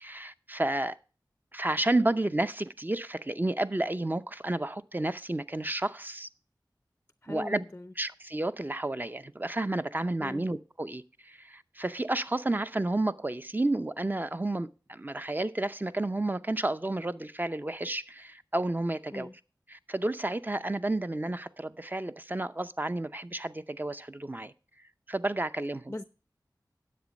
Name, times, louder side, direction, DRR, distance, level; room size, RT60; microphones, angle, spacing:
voice 1, 0.0-1.0 1.5-6.3 7.3-7.6 8.0-19.3 19.7-24.5 25.1-25.9, right 2 dB, 25° right, 0.6 m, -31 dB
voice 2, 7.2-7.9 10.2-10.4 19.1-19.3 25.9-26.0, left 1 dB, 25° left, 0.5 m, -39 dB
10.5 x 7.6 x 5.2 m
wide cardioid pair, 40°, 8 cm